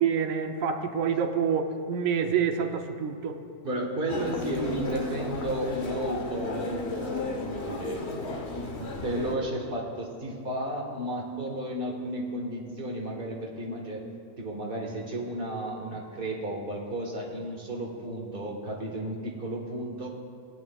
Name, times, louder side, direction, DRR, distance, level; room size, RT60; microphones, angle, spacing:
voice 1, 0.0-3.3, right 7 dB, 90° right, 6 dB, 1.1 m, -27 dB
voice 2, 3.6-8.4 8.7-14.0 14.4-20.1, right 1 dB, 45° right, -1 dB, 1.6 m, -33 dB
Human voice, 4.1-9.3, left 3 dB, 55° left, 1.3 m, -34 dB
18.5 x 9.0 x 2.3 m, 2.4 s
omnidirectional pair, 1.4 m